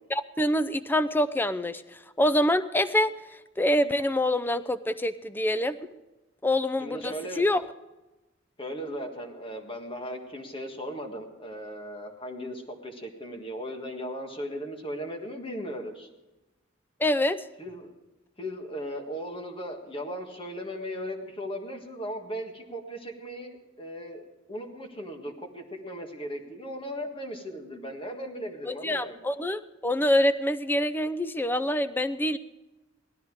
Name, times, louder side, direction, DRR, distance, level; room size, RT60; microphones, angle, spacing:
voice 1, 0.1-3.1 3.6-5.8 6.4-7.6 17.0-17.5 28.7-32.4, left 1 dB, 10° left, 14 dB, 0.5 m, -26 dB
voice 2, 6.8-7.4 8.6-16.1 17.6-17.9 18.4-29.2, equal, 30° left, 3 dB, 1.7 m, -37 dB
17.5 x 13.0 x 4.8 m, 1.0 s
head